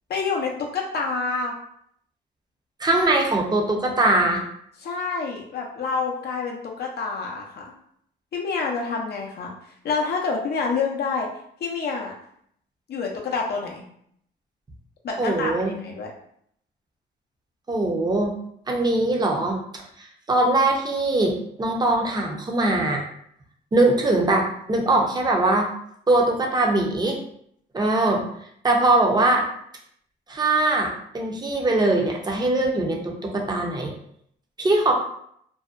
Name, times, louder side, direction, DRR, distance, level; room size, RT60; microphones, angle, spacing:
voice 1, 0.1-1.5 4.8-7.7 8.3-9.5 9.8-11.3 11.6-12.1 12.9-13.8 15.0-16.1, left 4 dB, 55° left, 0 dB, 0.5 m, -27 dB
voice 2, 2.8-4.4 15.2-15.8 17.7-18.3 18.7-19.8 20.3-23.0 23.7-25.7 26.1-27.2 27.7-28.2 28.6-29.5 30.3-33.9 34.6-34.9, right 2 dB, 20° right, 0 dB, 0.6 m, -21 dB
2.6 x 2.1 x 2.4 m, 0.68 s
cardioid pair, 90°, 20 cm